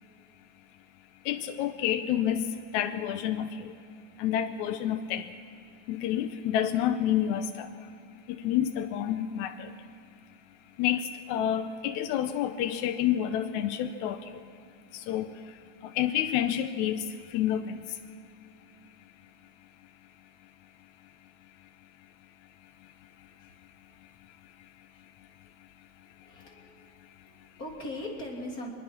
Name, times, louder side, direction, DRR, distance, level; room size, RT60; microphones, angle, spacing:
voice 1, 1.3-2.4 2.7-3.5 4.2-5.2 5.9-7.7 8.4-9.5 10.8-11.0 11.3-14.2 15.1-15.3 16.0-17.0 17.3-17.6, left 11 dB, 80° left, 7 dB, 2.1 m, -28 dB
voice 2, 26.2-26.8 27.3-28.7, left 1 dB, 30° left, -2 dB, 3.5 m, -39 dB
23.5 x 21.5 x 6.0 m, 2.5 s
omnidirectional pair, 3.4 m